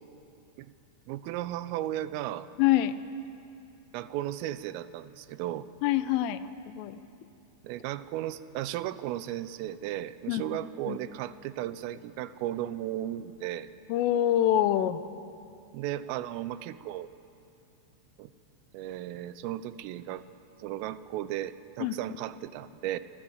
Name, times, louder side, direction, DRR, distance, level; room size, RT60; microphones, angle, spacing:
voice 1, 1.1-2.5 3.9-5.7 7.6-13.7 15.7-17.1 18.2-18.3 18.7-20.2 20.6-23.0, right 13 dB, 85° right, 14 dB, 3.3 m, -35 dB
voice 2, 2.6-3.0 5.8-6.4 6.7-7.0 10.3-10.4 10.9-11.0 13.9-15.0 21.8-22.0, left 12 dB, 80° left, 12 dB, 3.4 m, -25 dB
26.5 x 23.0 x 8.0 m, 2.6 s
omnidirectional pair, 5.8 m